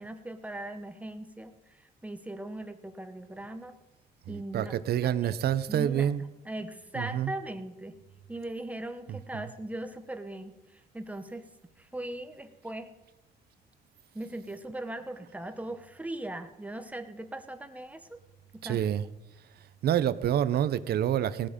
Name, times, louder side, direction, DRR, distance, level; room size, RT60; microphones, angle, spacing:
voice 1, 0.0-3.7 4.3-4.7 5.0-5.4 5.7-6.1 6.4-8.0 8.3-11.5 11.8-12.9 14.1-18.2 18.5-18.8, right 1 dB, 10° right, 9 dB, 1.0 m, -39 dB
voice 2, 4.3-6.2 6.9-7.3 9.1-9.5 18.6-19.1 19.8-21.5, right 10 dB, 70° right, 16 dB, 0.7 m, -28 dB
18.5 x 8.7 x 5.1 m, 0.97 s
cardioid pair, 140°, 17 cm